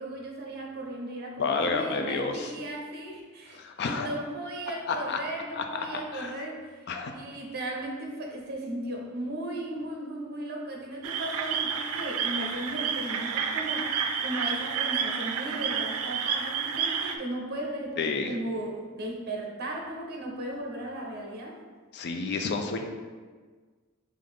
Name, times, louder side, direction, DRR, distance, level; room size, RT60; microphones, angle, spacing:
voice 1, 0.0-6.7 7.1-21.6, right 1 dB, 50° right, 0 dB, 0.7 m, -36 dB
voice 2, 1.4-2.5 3.5-4.1 4.9-5.2 5.5-6.3 6.9-7.1 18.0-18.3 21.9-22.8, left 4 dB, 50° left, 5 dB, 0.4 m, -30 dB
sound 1, 11.0-17.2, right 7 dB, 90° right, 0.4 m, -30 dB
3.8 x 3.2 x 3.5 m, 1.5 s
head